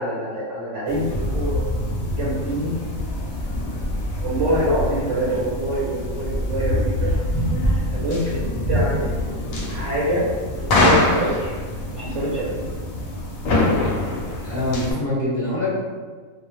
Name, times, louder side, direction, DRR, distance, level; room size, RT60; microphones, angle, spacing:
voice 1, 0.0-1.6 2.2-2.7 4.2-7.1 7.8-9.2 9.7-10.3 10.6-11.5 11.9-12.6, right 1 dB, 70° right, -6 dB, 0.9 m, -25 dB
sound 1, 0.9-14.9, left 1 dB, 80° left, 1.0 m, -24 dB
voice 2, 14.4-15.7, left 1 dB, 15° right, -13 dB, 1.0 m, -24 dB
2.3 x 2.0 x 3.0 m, 1.5 s
omnidirectional pair, 1.4 m